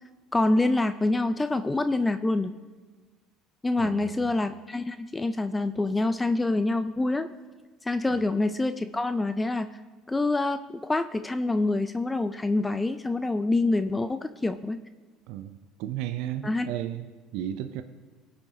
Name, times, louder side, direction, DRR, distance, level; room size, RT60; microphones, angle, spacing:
voice 1, 0.3-2.5 3.6-7.3 7.8-9.7 10.1-14.8 16.4-16.7, left 2 dB, 15° left, 10 dB, 0.4 m, -26 dB
voice 2, 3.8-4.3 8.1-8.2 15.3-17.8, right 11 dB, 70° right, 9 dB, 0.5 m, -34 dB
20.0 x 7.7 x 2.8 m, 1.3 s
hypercardioid pair, 70°, 0 cm